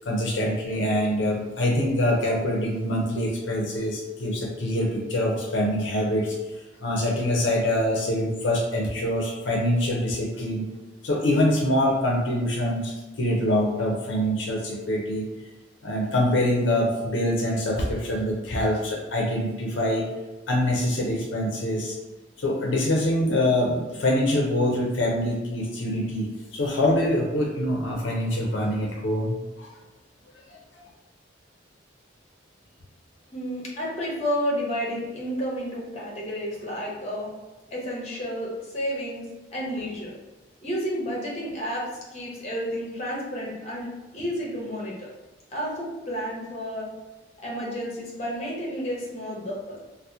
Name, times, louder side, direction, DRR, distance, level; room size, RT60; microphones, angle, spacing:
voice 1, 0.1-6.4 6.8-10.7 11.0-15.3 15.8-20.1 20.5-22.0 22.4-29.7 30.5-30.6, left 1 dB, 75° left, -1 dB, 0.5 m, -25 dB
voice 2, 33.3-37.3 37.7-39.3 39.5-40.1 40.6-45.1 45.5-46.9 47.4-49.8, equal, 35° left, -3 dB, 0.8 m, -31 dB
2.8 x 2.0 x 3.5 m, 1.1 s
head